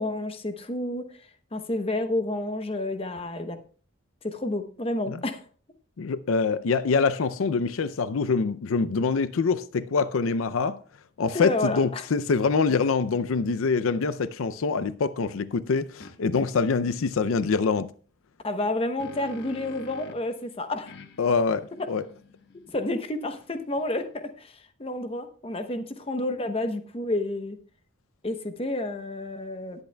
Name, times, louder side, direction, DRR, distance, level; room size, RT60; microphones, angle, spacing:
voice 1, 0.0-3.6 4.2-5.4 11.3-12.0 18.4-21.0 22.7-27.6 28.2-29.8, left 2 dB, 30° left, 0.8 m, -30 dB
voice 2, 6.0-10.8 11.2-17.9 21.2-22.0, left 4 dB, 85° left, 0.5 m, -25 dB
sound 1, 16.0-16.2 18.6-20.3 20.9-24.2, left 1 dB, 55° left, 1.1 m, -47 dB
19.0 x 8.0 x 2.2 m
head